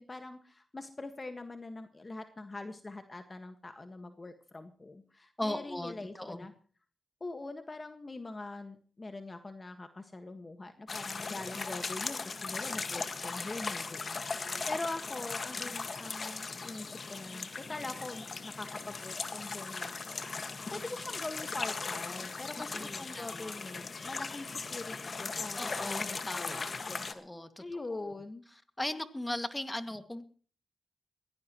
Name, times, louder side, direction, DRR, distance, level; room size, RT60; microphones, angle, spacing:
voice 1, 0.0-6.5 7.2-27.2 27.6-28.4, left 2 dB, 35° left, 7 dB, 1.7 m, -43 dB
voice 2, 5.4-6.5 14.3-14.7 20.7-20.8 22.6-23.5 25.6-26.8 27.1-27.6 27.9-28.1 28.8-30.2, left 1 dB, 15° left, 8 dB, 2.2 m, -39 dB
sound 1, 10.9-27.1, left 4 dB, 55° left, 1.8 m, -38 dB
22.5 x 17.0 x 3.1 m, 0.42 s
cardioid pair, 60°, 0 cm